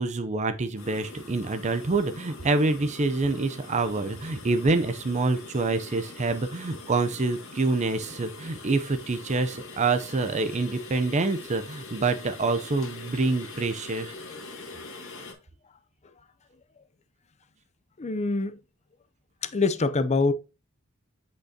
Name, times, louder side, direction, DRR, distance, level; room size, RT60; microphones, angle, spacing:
voice 1, 0.0-14.1, right 3 dB, 30° right, 0.6 m, -26 dB
sound 1, 0.8-15.3, left 3 dB, 60° left, 1.9 m, -43 dB
voice 2, 18.0-18.6 19.4-20.3, left 3 dB, 30° left, 0.5 m, -25 dB
8.7 x 5.3 x 2.8 m
head